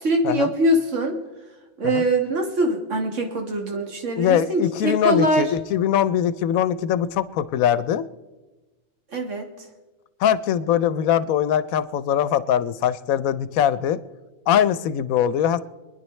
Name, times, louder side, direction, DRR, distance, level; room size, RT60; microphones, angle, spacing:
voice 1, 0.0-1.2 1.8-5.5 9.1-9.5, right 1 dB, 60° right, 2 dB, 1.9 m, -23 dB
voice 2, 4.1-8.0 10.2-14.0 14.5-15.6, left 9 dB, 85° left, 14 dB, 1.1 m, -22 dB
25.5 x 10.0 x 3.2 m, 1.2 s
omnidirectional pair, 1.4 m